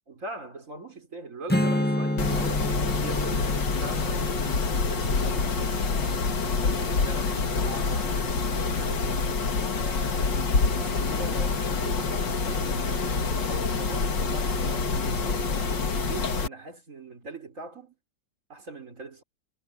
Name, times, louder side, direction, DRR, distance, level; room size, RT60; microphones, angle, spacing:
voice 1, 0.1-6.2 6.6-9.2 9.6-18.0 18.5-19.2, right 2 dB, 45° right, 4.2 m, -42 dB
Strum, 1.5-6.8, left 1 dB, 5° left, 1.7 m, -30 dB
Mechanisms, 2.2-16.5, left 4 dB, 75° left, 2.7 m, -26 dB
omnidirectional pair, 1.9 m